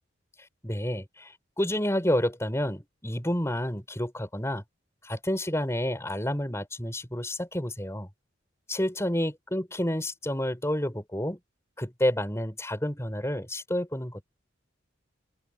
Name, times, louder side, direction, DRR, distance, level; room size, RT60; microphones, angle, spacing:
voice 1, 0.6-4.6 5.0-8.1 8.7-11.4 11.8-14.3, left 1 dB, 15° left, 6.6 m, -29 dB
head